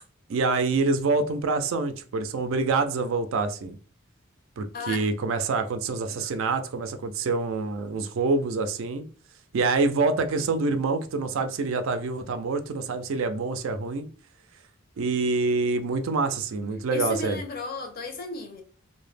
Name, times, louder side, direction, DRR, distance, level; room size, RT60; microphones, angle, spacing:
voice 1, 0.3-3.8 4.6-9.0 9.5-14.1 15.0-17.4, right 3 dB, 70° right, 0.4 m, -26 dB
voice 2, 4.7-5.0 16.9-18.6, left 3 dB, 45° left, 0.5 m, -34 dB
2.1 x 2.0 x 3.2 m
head